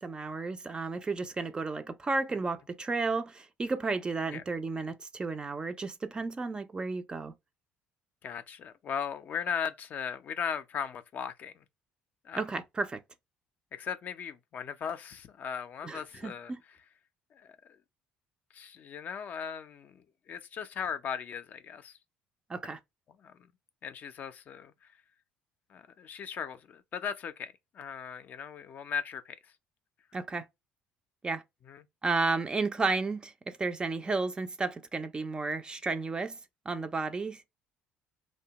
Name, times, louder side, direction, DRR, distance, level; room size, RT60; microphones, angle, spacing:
voice 1, 0.0-7.3 12.3-13.0 15.8-16.6 22.5-22.8 30.1-30.5 31.2-31.4 32.0-36.4 36.7-37.5, right 3 dB, 25° right, 0.3 m, -33 dB
voice 2, 8.2-11.6 12.2-12.4 13.7-16.5 17.3-17.5 18.5-22.0 23.2-23.3 23.8-24.7 25.7-29.4 31.7-31.8, left 7 dB, 50° left, 0.4 m, -38 dB
2.7 x 2.2 x 2.8 m
supercardioid pair, 90°, 4 cm